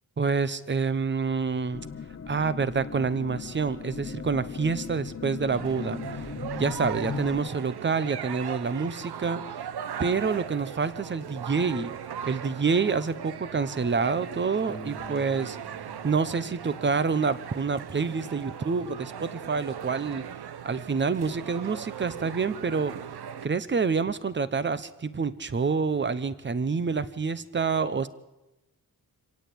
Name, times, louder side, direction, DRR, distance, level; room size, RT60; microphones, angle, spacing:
voice 1, 0.2-1.9 2.3-6.0 6.6-9.7 10.0-11.9 12.2-15.6 16.0-20.3 20.6-22.9 23.4-28.1, right 5 dB, 30° right, 15 dB, 1.0 m, -27 dB
sound 1, 1.7-7.5, left 6 dB, 35° left, 1.1 m, -37 dB
sound 2, 5.5-23.5, right 9 dB, 80° right, 1.1 m, -39 dB
Piano, 14.7-17.4, equal, 10° right, 2.1 m, -47 dB
26.0 x 17.5 x 8.7 m, 1.0 s
wide cardioid pair, 170°, 39 cm